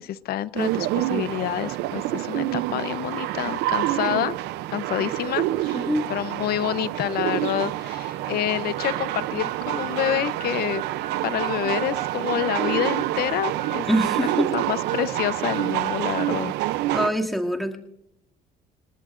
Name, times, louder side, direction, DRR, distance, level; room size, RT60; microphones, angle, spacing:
voice 1, 0.0-4.3 4.7-10.8 11.2-13.9 14.2-14.3 14.5-16.5, left 12 dB, 65° left, 16 dB, 0.7 m, -28 dB
sound 1, 0.6-17.1, right 15 dB, 90° right, 0.6 m, -27 dB
voice 2, 5.7-6.1 13.9-14.5 16.9-17.8, equal, ahead, 1 dB, 2.4 m, -24 dB
Harmonica, 8.8-16.4, right 10 dB, 50° right, 2.2 m, -39 dB
28.5 x 18.5 x 2.6 m, 0.81 s
cardioid pair, 110°, 17 cm